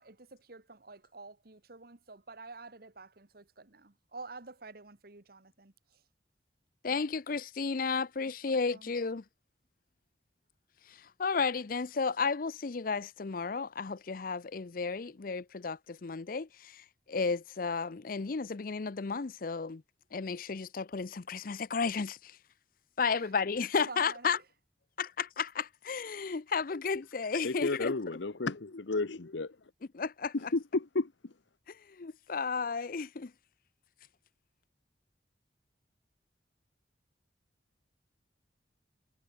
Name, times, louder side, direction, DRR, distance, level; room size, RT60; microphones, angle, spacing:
voice 1, 0.0-6.0 8.3-8.4 8.7-8.9 23.1-23.3 23.9-24.4, right 3 dB, 55° right, 1.6 m, -49 dB
voice 2, 6.8-9.2 10.9-19.8 20.1-22.4 23.0-24.4 25.0-27.9 29.9-30.3 32.0-33.3, left 5 dB, 50° left, 0.6 m, -33 dB
voice 3, 27.4-29.7 30.3-31.3, left 3 dB, 85° left, 0.9 m, -33 dB
head